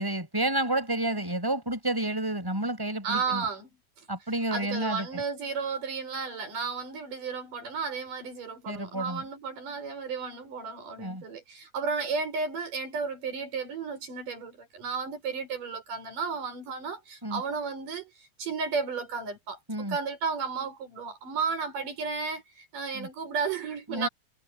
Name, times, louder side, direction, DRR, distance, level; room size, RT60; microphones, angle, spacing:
voice 1, 0.0-3.5 4.1-5.2 8.7-9.2 11.0-11.2 17.2-17.4 19.7-20.0 22.9-23.1 23.9-24.1, right 1 dB, 5° right, 7.5 m, -30 dB
voice 2, 3.0-3.7 4.0-4.1 4.5-19.6 19.9-24.1, right 5 dB, 80° right, 6.9 m, -33 dB
omnidirectional pair, 3.7 m